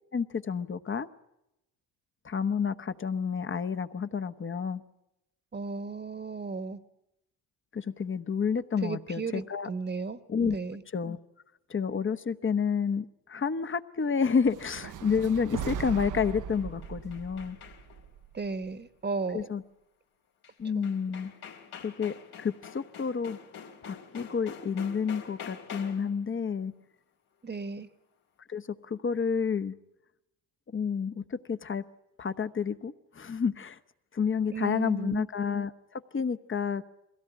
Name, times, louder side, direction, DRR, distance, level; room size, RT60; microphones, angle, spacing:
voice 1, 0.1-1.1 2.2-4.8 7.7-9.7 10.3-10.6 10.9-11.2 11.7-17.6 19.3-19.6 20.6-21.3 21.8-23.4 23.8-26.7 28.5-29.8 30.7-31.8 32.2-33.8 34.1-36.8, left 6 dB, 30° left, 1.1 m, -30 dB
voice 2, 5.5-6.8 8.8-10.8 18.3-19.5 20.7-20.9 27.4-27.9 34.5-35.2, right 4 dB, 25° right, 1.3 m, -35 dB
sound 1, 14.4-18.7, right 8 dB, 55° right, 0.9 m, -39 dB
sound 2, 16.3-18.1 20.4-20.5 20.8-26.2, left 7 dB, 75° left, 3.0 m, -46 dB
22.0 x 17.0 x 9.2 m
supercardioid pair, 75°, 38 cm